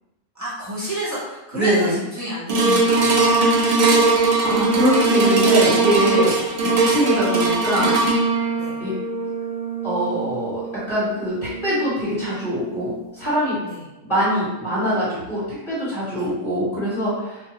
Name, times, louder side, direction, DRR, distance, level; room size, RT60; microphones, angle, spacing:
voice 1, 0.3-3.5 7.0-7.1 8.6-8.8 13.6-13.8 16.1-16.3, equal, 15° right, -10 dB, 1.1 m, -30 dB
voice 2, 1.5-2.0 4.4-6.3 6.6-8.1 8.8-8.9 9.8-10.6 10.9-13.6 14.1-17.4, equal, 35° left, -13 dB, 1.6 m, -23 dB
sound 1, 2.5-12.9 13.4-13.5, right 3 dB, 70° right, 0.9 m, -20 dB
2.6 x 2.5 x 2.9 m, 1.0 s
omnidirectional pair, 1.5 m